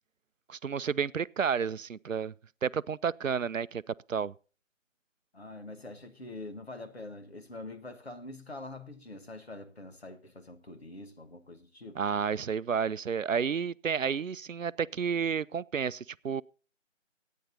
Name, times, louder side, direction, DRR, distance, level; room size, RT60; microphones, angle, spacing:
voice 1, 0.5-2.3 2.6-3.8 4.1-4.3 12.0-16.4, right 6 dB, 90° right, 0.5 m, -31 dB
voice 2, 5.3-12.0 14.0-14.1, left 2 dB, 55° left, 1.6 m, -45 dB
22.5 x 9.3 x 2.7 m
figure-of-eight pair, 160°, 38 cm